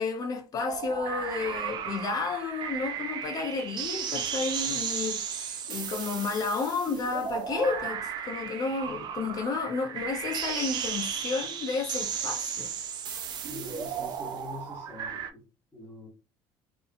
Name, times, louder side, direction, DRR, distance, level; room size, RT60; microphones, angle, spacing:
voice 1, 0.0-12.7, left 4 dB, 35° left, 0.5 m, -32 dB
sound 1, 0.7-15.3, right 7 dB, 40° right, 0.4 m, -35 dB
voice 2, 13.4-15.4 15.7-16.1, left 1 dB, 10° left, 1.0 m, -44 dB
2.7 x 2.4 x 2.4 m
cardioid pair, 155°, 11 cm